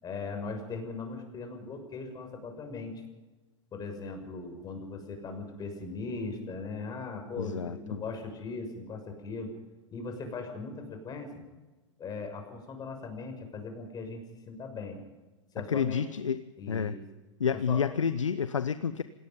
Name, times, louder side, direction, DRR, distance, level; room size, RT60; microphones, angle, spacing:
voice 1, 0.0-2.9 3.7-9.5 9.9-11.4 12.0-15.0 15.5-16.1 16.6-17.0 17.7-17.8, left 4 dB, 25° left, 5 dB, 6.5 m, -39 dB
voice 2, 7.4-8.0 15.7-17.0 17.4-19.0, left 6 dB, 80° left, 14 dB, 0.9 m, -30 dB
27.5 x 18.5 x 5.4 m, 1.2 s
figure-of-eight pair, 100°, 16 cm